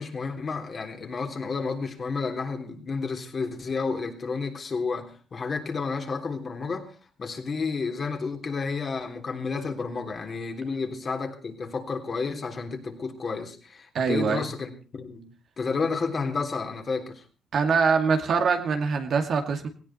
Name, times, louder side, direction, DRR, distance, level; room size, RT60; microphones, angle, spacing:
voice 1, 0.0-6.9 7.2-17.2, left 4 dB, 40° left, 4 dB, 3.6 m, -31 dB
voice 2, 13.9-14.5 17.5-19.7, right 5 dB, 60° right, 6 dB, 2.3 m, -23 dB
18.0 x 16.5 x 4.4 m, 0.35 s
cardioid pair, 90°, 0 cm